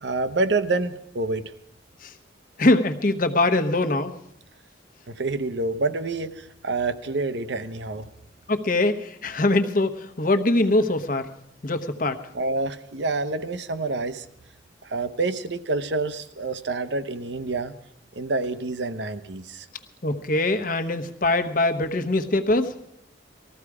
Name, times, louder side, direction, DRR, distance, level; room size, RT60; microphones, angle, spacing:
voice 1, 0.0-1.5 5.1-8.1 12.3-14.3 14.8-17.7 18.1-19.7, right 3 dB, 65° right, 11 dB, 0.8 m, -27 dB
voice 2, 2.6-4.1 8.5-11.3 11.6-12.2 20.0-22.7, left 2 dB, 45° left, 8 dB, 1.0 m, -22 dB
19.5 x 14.0 x 4.9 m, 0.77 s
head